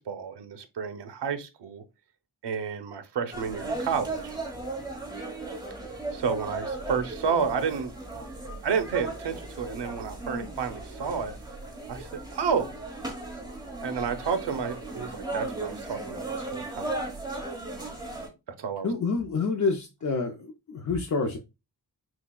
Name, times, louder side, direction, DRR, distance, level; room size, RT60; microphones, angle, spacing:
voice 1, 0.0-1.8 2.4-4.4 6.1-7.9 8.6-11.4 11.9-12.7 13.8-17.0 18.6-18.9, right 6 dB, 85° right, 0.7 m, -30 dB
sound 1, 3.3-18.3, right 2 dB, 10° right, 1.0 m, -36 dB
voice 2, 18.8-21.4, left 4 dB, 45° left, 0.5 m, -28 dB
5.8 x 2.2 x 2.2 m
wide cardioid pair, 140°, 40 cm